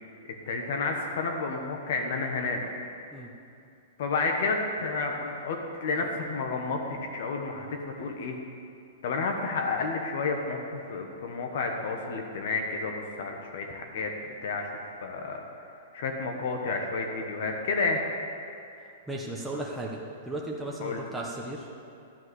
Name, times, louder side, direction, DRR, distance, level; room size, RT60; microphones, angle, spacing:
voice 1, 0.5-2.7 4.0-8.4 9.0-18.0 20.8-21.0, left 3 dB, 65° left, 2 dB, 1.3 m, -31 dB
voice 2, 19.1-21.8, right 1 dB, 5° right, -3 dB, 1.0 m, -36 dB
12.0 x 4.9 x 8.2 m, 2.5 s
hypercardioid pair, 145°, 0 cm